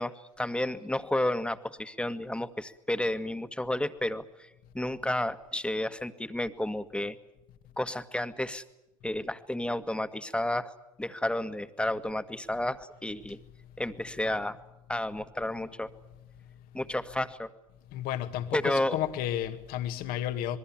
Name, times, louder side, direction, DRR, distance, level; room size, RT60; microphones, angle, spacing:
voice 1, 0.0-4.5 4.7-7.2 7.8-8.6 9.0-10.7 11.0-13.4 13.8-14.6 14.9-15.9 16.7-17.5 18.5-19.0, left 1 dB, 5° left, 1.8 m, -31 dB
voice 2, 17.9-20.6, left 11 dB, 60° left, 2.0 m, -32 dB
27.0 x 22.0 x 7.5 m
hypercardioid pair, 65°, 17 cm